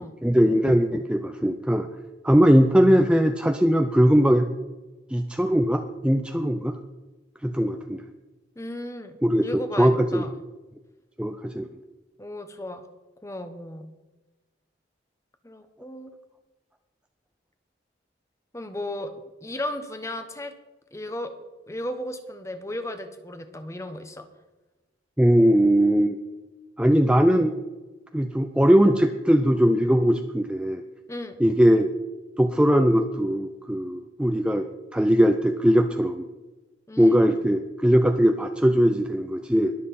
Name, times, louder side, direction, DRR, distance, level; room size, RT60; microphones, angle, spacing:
voice 1, 0.0-1.9 2.2-4.5 5.1-6.7 7.4-8.0 9.2-10.2 11.2-11.7 25.2-26.2 26.8-27.5 28.1-30.8 31.4-31.9 32.4-34.7 34.9-36.3 37.0-39.7, equal, 5° right, 6 dB, 0.4 m, -20 dB
voice 2, 8.6-10.3 12.2-12.8 13.2-13.9 15.4-16.1 18.5-19.1 19.4-20.5 20.9-21.3 21.7-24.3 31.1-31.4 36.9-37.4, left 1 dB, 15° left, 8 dB, 0.9 m, -35 dB
21.0 x 7.6 x 4.2 m, 1.1 s
head